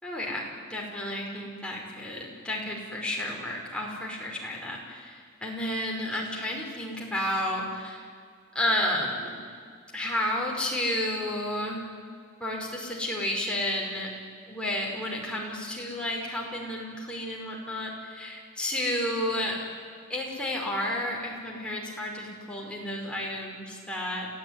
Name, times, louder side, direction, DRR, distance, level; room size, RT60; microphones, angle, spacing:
voice 1, 0.0-8.1 8.6-9.4 9.9-11.9 12.4-14.1 14.5-19.6 20.1-24.3, left 1 dB, 5° left, -2 dB, 5.1 m, -31 dB
29.0 x 16.5 x 9.8 m, 2.1 s
head